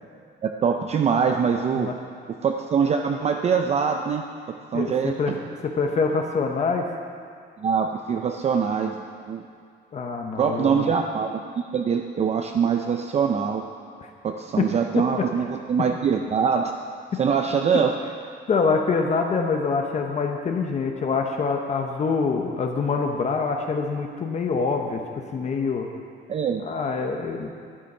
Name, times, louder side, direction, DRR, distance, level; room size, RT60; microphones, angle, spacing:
voice 1, 0.4-1.9 2.4-4.2 4.7-5.4 7.6-9.5 10.4-13.6 14.2-16.7 17.2-18.0 26.3-26.6, right 6 dB, 35° right, 4 dB, 0.5 m, -23 dB
voice 2, 4.7-5.4 5.6-6.8 9.9-10.9 14.0-14.1 14.6-15.3 18.5-25.0 25.3-25.9 26.6-27.5, left 4 dB, 35° left, 3 dB, 0.9 m, -25 dB
12.5 x 9.2 x 5.5 m, 2.2 s
cardioid pair, 150°, 19 cm